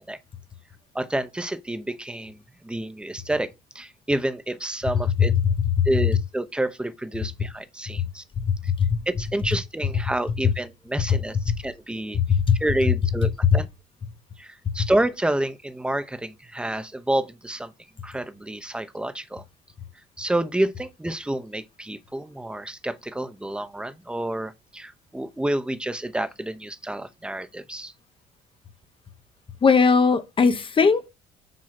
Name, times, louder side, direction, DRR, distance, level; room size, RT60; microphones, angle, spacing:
voice 1, 0.9-3.5 3.7-5.3 5.8-8.2 8.6-8.7 9.1-11.4 11.6-12.2 12.6-13.7 14.4-17.7 18.0-19.4 20.2-27.9, right 1 dB, 5° right, 0.9 m, -29 dB
voice 2, 5.4-5.9 8.0-8.1 8.4-8.9 12.1-12.6 29.6-31.1, left 5 dB, 30° left, 0.9 m, -19 dB
7.7 x 3.0 x 5.9 m
cardioid pair, 110°, 17 cm